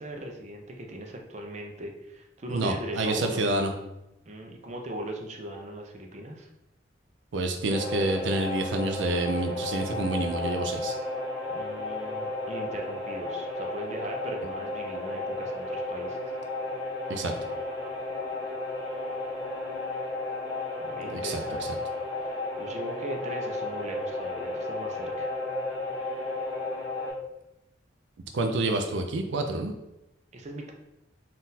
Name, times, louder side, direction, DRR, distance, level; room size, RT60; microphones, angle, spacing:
voice 1, 0.0-3.4 4.2-6.5 11.5-16.3 20.8-21.8 22.2-25.4 30.3-30.7, right 1 dB, 40° right, 2 dB, 0.6 m, -39 dB
voice 2, 2.5-3.7 7.3-10.9 17.1-17.3 21.0-21.4 28.3-29.7, right 2 dB, 85° right, 5 dB, 0.4 m, -28 dB
sound 1, 7.7-27.1, left 2 dB, 25° left, 1.1 m, -33 dB
3.9 x 2.5 x 4.0 m, 0.89 s
head